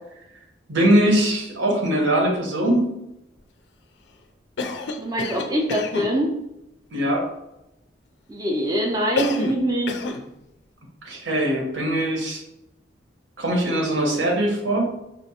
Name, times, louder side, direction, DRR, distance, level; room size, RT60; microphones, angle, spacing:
voice 1, 0.7-2.9 6.9-7.2 11.0-12.4 13.4-14.9, right 1 dB, 80° right, -1 dB, 0.9 m, -21 dB
Cough, 4.6-6.1 9.2-9.6 9.9-10.2, left 3 dB, 65° left, 0.4 m, -28 dB
voice 2, 5.0-6.3 8.3-10.0, equal, 20° right, -1 dB, 0.4 m, -24 dB
4.3 x 2.1 x 2.8 m, 0.88 s
head